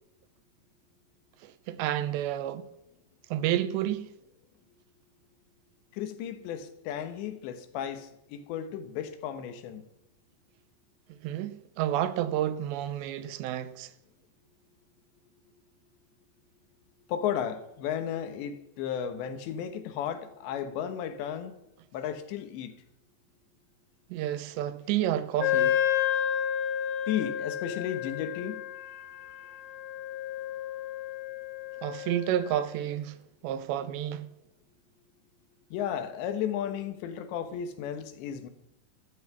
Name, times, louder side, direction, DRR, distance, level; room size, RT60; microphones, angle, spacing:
voice 1, 1.4-2.7 3.3-4.1 11.1-13.9 24.1-25.8 31.8-33.2 33.4-34.3, right 12 dB, 80° right, 2.9 m, -30 dB
voice 2, 5.9-9.9 17.1-21.5 21.9-22.8 27.1-28.6 28.9-29.0 29.4-29.6 35.7-38.5, left 9 dB, 80° left, 3.5 m, -34 dB
Wind instrument woodwind instrument, 25.4-32.7, left 10 dB, 60° left, 1.6 m, -31 dB
13.5 x 13.5 x 5.9 m
omnidirectional pair, 5.1 m